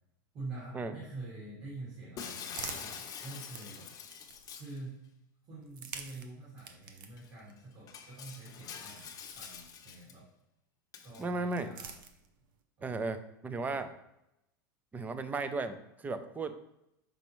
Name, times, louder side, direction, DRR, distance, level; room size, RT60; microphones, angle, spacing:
voice 1, 0.3-3.9 4.5-5.1 5.5-10.3 11.0-12.0 12.8-12.9 13.7-13.9, right 2 dB, 40° right, -6 dB, 2.1 m, -46 dB
sound 1, 1.7-4.7 5.6-10.2 11.1-12.6, right 6 dB, 85° right, 0.7 m, -50 dB
Shatter, 2.2-4.8 6.6-6.7 7.2-7.3 7.9-10.1 10.9-11.2, left 7 dB, 35° left, 0.8 m, -45 dB
voice 2, 11.2-11.7 12.8-13.9 14.9-16.6, right 3 dB, 15° right, 10 dB, 0.5 m, -35 dB
5.8 x 5.2 x 3.1 m, 0.85 s
supercardioid pair, 125°, 11 cm